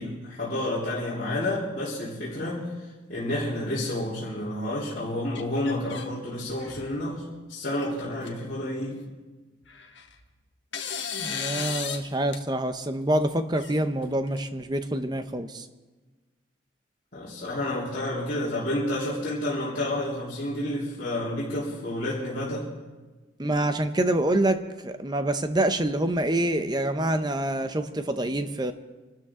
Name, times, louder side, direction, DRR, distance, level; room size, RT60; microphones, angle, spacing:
voice 1, 0.0-2.7 3.1-9.1 17.1-22.7, left 1 dB, 45° left, -10 dB, 3.7 m, -30 dB
sound 1, 5.4-6.1 6.5-7.0 7.8-7.9 8.2-8.3 9.6-10.2 10.7-12.0 12.3-12.4 13.6-14.4, left 7 dB, 70° left, 1.4 m, -35 dB
voice 2, 11.2-15.7 23.4-28.7, right 1 dB, 20° right, 9 dB, 0.7 m, -26 dB
27.0 x 13.0 x 3.7 m, 1.3 s
head